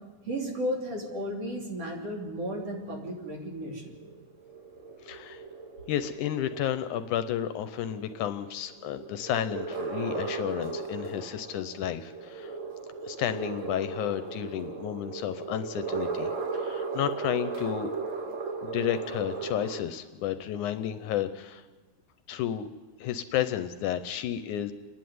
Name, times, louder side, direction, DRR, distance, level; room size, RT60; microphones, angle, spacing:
voice 1, 0.3-4.0, equal, 50° right, 0 dB, 3.9 m, -34 dB
sound 1, 2.4-19.8, right 4 dB, 70° right, 0.7 m, -37 dB
voice 2, 5.0-5.4 5.9-12.6 13.0-17.9 18.6-21.6 22.3-22.7 23.0-24.7, left 10 dB, 75° left, 11 dB, 2.1 m, -32 dB
28.5 x 11.0 x 9.4 m, 1.3 s
omnidirectional pair, 3.8 m